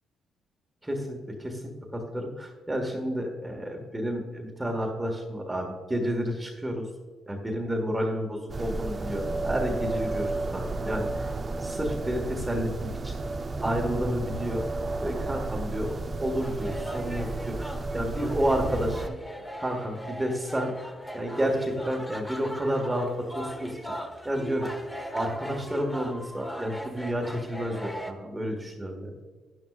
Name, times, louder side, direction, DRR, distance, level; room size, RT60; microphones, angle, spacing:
voice 1, 0.8-6.9 7.3-11.3 11.6-13.1 13.6-14.6 15.0-19.1 19.6-20.7 21.1-23.9 24.2-24.7 25.1-29.1, equal, 15° right, 2 dB, 1.6 m, -30 dB
sound 1, 8.5-19.1, right 3 dB, 35° right, 0.7 m, -32 dB
sound 2, 16.4-28.1, equal, 5° left, 1.2 m, -40 dB
11.0 x 10.5 x 2.5 m, 1.5 s
cardioid pair, 90°, 0 cm